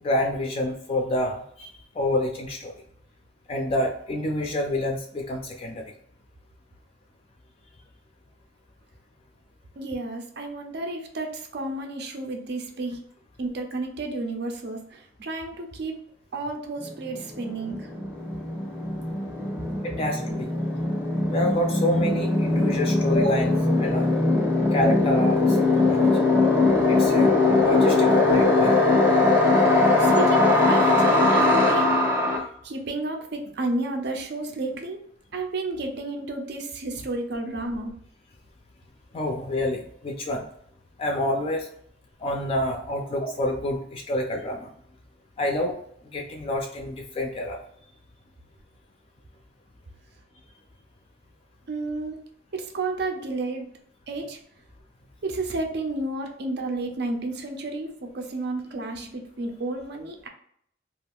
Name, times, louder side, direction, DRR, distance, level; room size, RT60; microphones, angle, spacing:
voice 1, 0.0-2.7 3.5-5.8 19.8-20.5 21.3-24.1 24.7-26.1 26.9-28.7 39.1-40.4 41.0-41.7 42.2-44.7 45.4-45.8 46.1-47.6, left 1 dB, 30° left, 2 dB, 0.3 m, -28 dB
voice 2, 9.8-13.0 13.4-16.0 16.3-17.9 30.0-32.1 32.3-35.0 35.3-37.9 51.7-52.2 52.5-53.7 54.1-54.4 55.2-60.3, right 2 dB, 60° right, 4 dB, 0.5 m, -31 dB
sound 1, 16.9-17.0 17.1-32.4, left 2 dB, 10° right, 0.6 m, -21 dB
2.4 x 2.3 x 3.4 m, 0.67 s
head